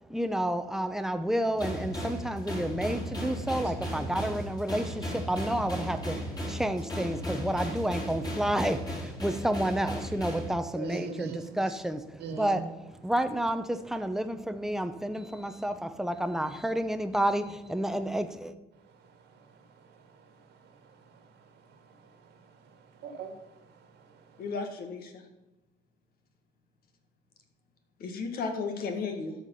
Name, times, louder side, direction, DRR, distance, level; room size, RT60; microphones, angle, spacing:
voice 1, 0.1-12.7 13.0-18.5, right 1 dB, 5° right, 9 dB, 0.8 m, -30 dB
sound 1, 1.6-10.5, equal, 20° left, 3.2 m, -36 dB
voice 2, 10.7-11.5 12.2-12.7 18.9-24.4, right 5 dB, 75° right, 6 dB, 1.8 m, -44 dB
voice 3, 24.4-25.2 28.0-29.4, left 4 dB, 65° left, 5 dB, 1.9 m, -34 dB
12.5 x 5.1 x 5.6 m, 1.0 s
cardioid pair, 110°, 17 cm